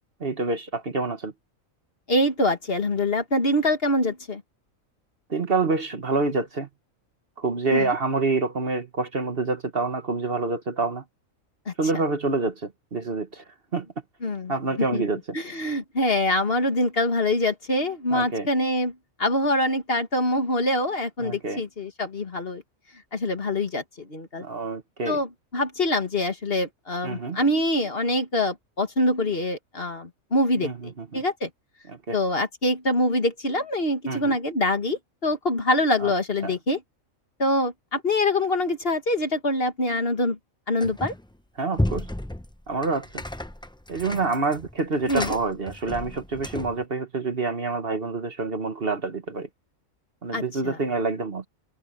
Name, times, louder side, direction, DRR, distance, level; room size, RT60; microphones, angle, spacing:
voice 1, 0.2-1.3 5.3-6.7 7.4-11.0 11.8-13.9 14.5-15.4 18.1-18.5 21.2-21.6 24.4-25.2 27.0-27.4 30.6-31.2 31.9-32.2 34.1-34.4 36.0-36.1 36.4-36.6 41.6-42.1 42.7-43.2 43.9-49.5 50.2-51.5, right 3 dB, 45° right, 1.5 m, -27 dB
voice 2, 2.1-4.4 7.7-7.9 11.7-11.8 14.2-14.5 14.9-15.0 15.3-18.9 19.2-22.6 23.1-24.4 25.1-25.3 25.5-31.5 32.1-36.8 37.4-40.4 40.7-41.1 45.1-45.4 50.3-50.8, left 1 dB, 45° left, 2.2 m, -24 dB
sound 1, 40.8-41.3 41.7-46.9, left 1 dB, 5° left, 0.5 m, -33 dB
omnidirectional pair, 1.4 m